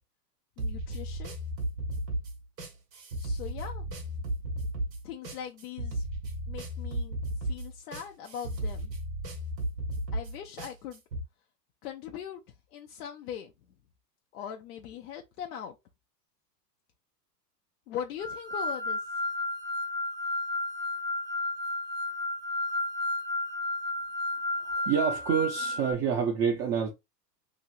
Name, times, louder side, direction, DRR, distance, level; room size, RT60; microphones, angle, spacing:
voice 1, 0.6-1.4 3.2-4.0 5.0-6.1 6.5-8.9 10.1-11.0 11.8-12.4 12.7-13.5 14.3-15.8 17.9-19.2, left 9 dB, 65° left, 0.7 m, -40 dB
sound 1, 0.6-11.2, right 1 dB, 85° right, 1.2 m, -34 dB
sound 2, 18.2-25.9, left 2 dB, 10° left, 0.7 m, -32 dB
voice 2, 24.5-26.9, right 7 dB, 35° right, 0.7 m, -28 dB
3.1 x 2.7 x 2.6 m
hypercardioid pair, 105°, 48 cm